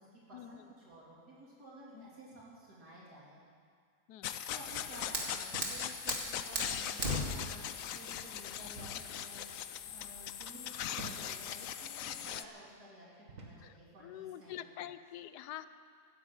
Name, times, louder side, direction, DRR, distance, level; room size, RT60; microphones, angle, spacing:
voice 1, 0.0-3.4 4.5-7.7 7.9-14.5, right 1 dB, 75° right, -7 dB, 3.8 m, -54 dB
sound 1, 4.2-12.4, left 10 dB, 65° left, 1.0 m, -40 dB
Fire, 4.5-10.5, equal, 35° right, 2.3 m, -40 dB
sound 2, 5.5-5.8 6.1-6.2 7.0-7.3 8.8-9.1 9.8-10.0 11.0-11.3 12.1-12.3 13.3-13.7, right 2 dB, 55° right, 2.1 m, -48 dB
voice 2, 14.0-15.7, left 12 dB, 85° left, 13 dB, 1.2 m, -46 dB
14.5 x 10.0 x 8.9 m, 2.1 s
omnidirectional pair, 1.7 m